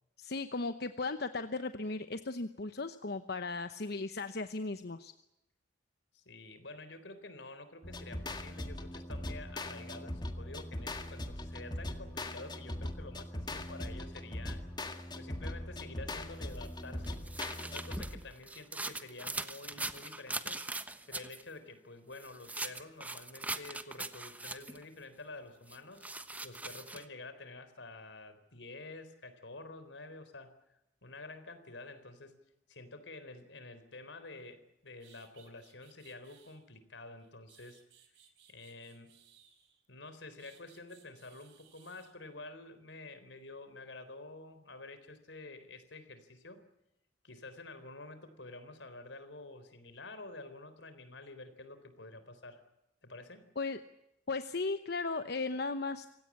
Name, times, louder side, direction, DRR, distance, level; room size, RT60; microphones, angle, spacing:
voice 1, 0.2-5.1 53.6-53.8 54.3-56.1, left 3 dB, 60° left, 10 dB, 0.9 m, -36 dB
voice 2, 6.1-14.6 15.1-17.2 17.6-20.6 21.1-26.0 26.4-30.5 31.0-32.4 32.7-37.8 38.5-39.1 39.9-46.6 47.2-52.6 53.0-53.5, left 2 dB, 85° left, 11 dB, 4.0 m, -49 dB
sound 1, 7.8-18.3, left 1 dB, 25° left, 1.9 m, -40 dB
sound 2, 16.5-21.4 22.1-24.8 25.7-27.0, right 2 dB, 10° right, 1.1 m, -41 dB
sound 3, 34.6-34.7 35.0-36.6 37.2-39.9 40.4-42.1, right 9 dB, 70° right, 4.3 m, -63 dB
26.5 x 17.5 x 8.6 m, 0.88 s
head